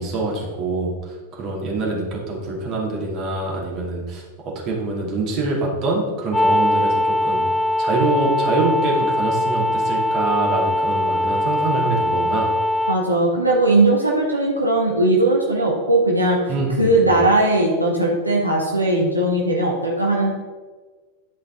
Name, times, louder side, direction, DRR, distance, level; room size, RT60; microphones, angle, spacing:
voice 1, 0.0-7.4 7.8-12.5 16.5-17.1, right 2 dB, 35° right, -2 dB, 2.3 m, -25 dB
sound 1, 6.3-13.0, left 1 dB, 10° left, 0.3 m, -21 dB
voice 2, 12.9-16.4 16.8-20.3, right 2 dB, 85° right, -2 dB, 1.2 m, -18 dB
10.5 x 5.1 x 3.8 m, 1.4 s
figure-of-eight pair, 90°, 0 cm